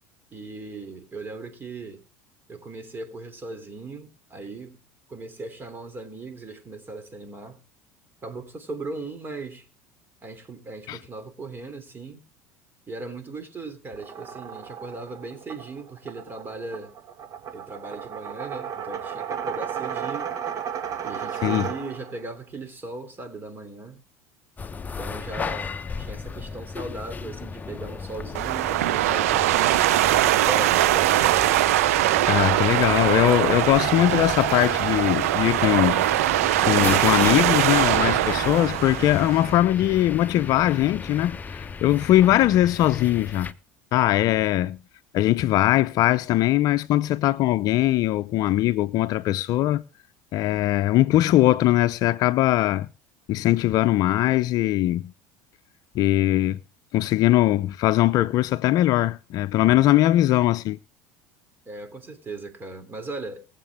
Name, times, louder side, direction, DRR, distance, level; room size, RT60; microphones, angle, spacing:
voice 1, 0.3-2.0 2.5-4.8 5.1-7.6 8.2-9.7 10.2-12.2 12.9-16.9 17.5-20.3 21.0-24.0 25.0-29.8 30.4-31.5 61.7-63.5, right 2 dB, 25° right, 3.1 m, -38 dB
sound 1, 13.9-22.2, right 8 dB, 45° right, 1.8 m, -34 dB
sound 2, 24.6-43.5, left 4 dB, 20° left, 0.8 m, -35 dB
sound 3, 28.3-39.5, right 15 dB, 80° right, 0.5 m, -22 dB
voice 2, 32.3-36.0 36.6-43.5 43.9-44.8 45.1-49.8 50.3-52.9 53.3-55.1 55.9-56.6 56.9-60.8, left 14 dB, 55° left, 0.5 m, -21 dB
21.0 x 7.5 x 3.6 m
hypercardioid pair, 85°, 8 cm